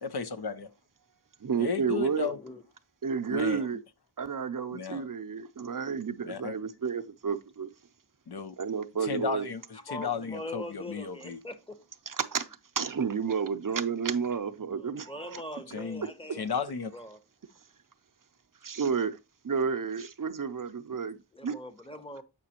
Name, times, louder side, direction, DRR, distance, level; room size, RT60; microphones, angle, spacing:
voice 1, 0.0-0.7 1.6-2.4 3.3-3.6 4.7-5.1 6.2-6.5 8.3-8.6 9.0-11.4 15.5-16.9, left 6 dB, 75° left, 0.6 m, -34 dB
voice 2, 1.4-2.3 3.0-3.8 4.2-7.7 8.6-9.5 12.1-12.5 12.8-15.5 16.0-16.1 18.6-19.2 19.4-21.2 21.4-21.5, right 6 dB, 55° right, 0.5 m, -31 dB
voice 3, 2.1-2.6 3.5-3.7 9.9-11.8 14.8-16.4 16.9-17.2 21.3-22.2, left 1 dB, 15° left, 0.9 m, -42 dB
7.5 x 5.0 x 2.8 m
wide cardioid pair, 55°, 39 cm